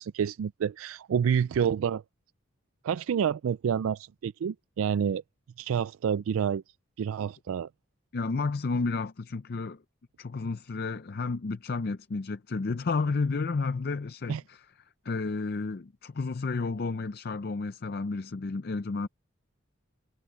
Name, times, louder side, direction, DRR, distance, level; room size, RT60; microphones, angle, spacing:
voice 1, 0.0-2.0 2.8-5.2 5.6-6.6 7.0-7.7 14.3-14.4, right 7 dB, 80° right, 0.3 m, -28 dB
voice 2, 8.1-9.8 10.2-14.7 15.0-19.1, left 4 dB, 50° left, 0.5 m, -31 dB
head